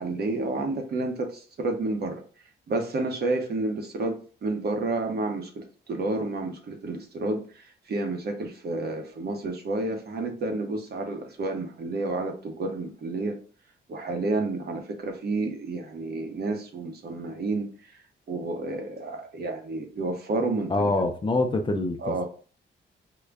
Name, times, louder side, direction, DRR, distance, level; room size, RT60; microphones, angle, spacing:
voice 1, 0.0-2.2 2.7-13.4 13.9-17.7 18.3-20.7 22.0-22.2, right 2 dB, 55° right, 4 dB, 0.9 m, -30 dB
voice 2, 20.7-22.2, left 2 dB, 25° left, 5 dB, 0.5 m, -25 dB
3.7 x 2.1 x 3.4 m, 0.39 s
cardioid pair, 105°, 20 cm